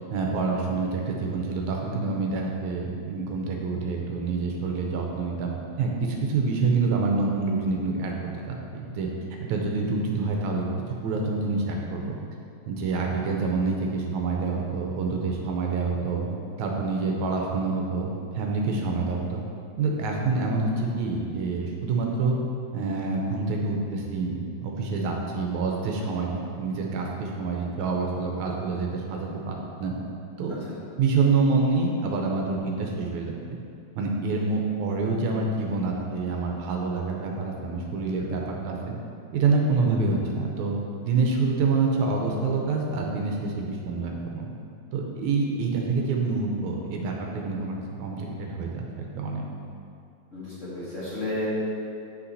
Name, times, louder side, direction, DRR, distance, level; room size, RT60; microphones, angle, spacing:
voice 1, 0.1-5.5 5.8-8.1 8.5-9.1 9.5-10.7 11.0-12.2 12.7-16.3 16.6-18.1 18.3-19.4 19.8-22.4 22.7-29.9 30.4-30.6 31.0-33.3 34.0-38.9 39.3-40.8 41.0-44.5 44.9-49.4, right 4 dB, 85° right, 0 dB, 2.2 m, -27 dB
voice 2, 50.3-51.5, left 2 dB, 30° left, -10 dB, 1.6 m, -32 dB
8.3 x 5.8 x 4.1 m, 2.5 s
omnidirectional pair, 3.3 m